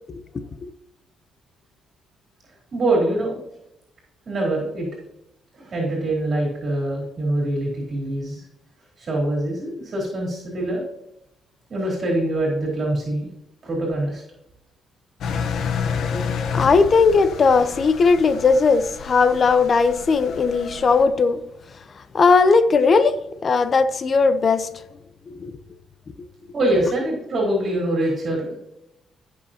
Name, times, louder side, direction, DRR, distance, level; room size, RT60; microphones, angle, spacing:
voice 1, 2.7-3.3 4.3-4.9 5.5-8.4 9.0-10.8 11.7-13.3 13.6-14.2 26.5-28.6, right 1 dB, 45° right, 3.9 m, -24 dB
Engine, 15.2-21.0, left 6 dB, 70° left, 1.0 m, -30 dB
voice 2, 16.5-21.4 22.1-23.2 23.4-24.7 25.3-25.5, left 4 dB, 45° left, 0.8 m, -17 dB
16.5 x 6.5 x 2.9 m
cardioid pair, 90°, 0 cm